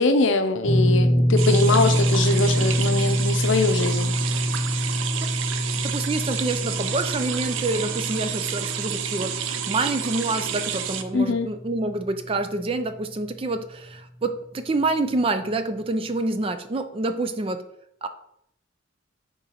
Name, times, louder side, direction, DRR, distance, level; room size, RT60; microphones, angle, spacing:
voice 1, 0.0-4.1 11.1-11.5, left 3 dB, 70° left, 8 dB, 0.6 m, -22 dB
sound 1, 0.6-12.9 13.1-13.4 15.1-15.2, equal, 35° left, 2.4 m, -25 dB
sound 2, 1.4-11.0, right 8 dB, 80° right, 0.5 m, -30 dB
voice 2, 5.8-17.6 18.0-18.1, right 2 dB, 30° right, 9 dB, 0.4 m, -27 dB
10.0 x 3.9 x 2.9 m, 0.76 s
head